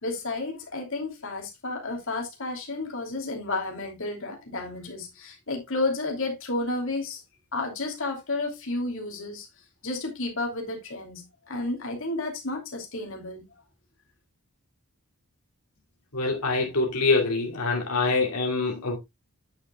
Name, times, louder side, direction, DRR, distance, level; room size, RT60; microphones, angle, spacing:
voice 1, 0.0-7.2 7.5-9.5 9.8-13.4, left 2 dB, 60° left, 2.9 m, -31 dB
voice 2, 16.1-19.0, left 3 dB, 90° left, 2.8 m, -25 dB
9.4 x 8.7 x 2.3 m
head